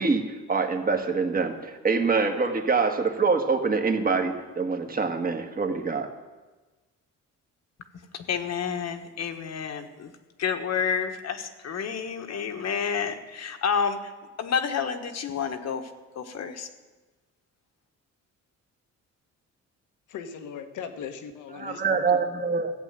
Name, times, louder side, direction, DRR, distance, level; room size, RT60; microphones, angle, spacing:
voice 1, 0.0-6.1 21.6-22.7, right 4 dB, 30° right, 5 dB, 1.6 m, -25 dB
voice 2, 8.1-10.1 10.4-14.1 14.4-16.7, left 6 dB, 60° left, 6 dB, 1.4 m, -29 dB
voice 3, 20.1-22.2, left 7 dB, 80° left, 7 dB, 1.3 m, -38 dB
14.5 x 8.2 x 7.5 m, 1.2 s
cardioid pair, 90°, 30 cm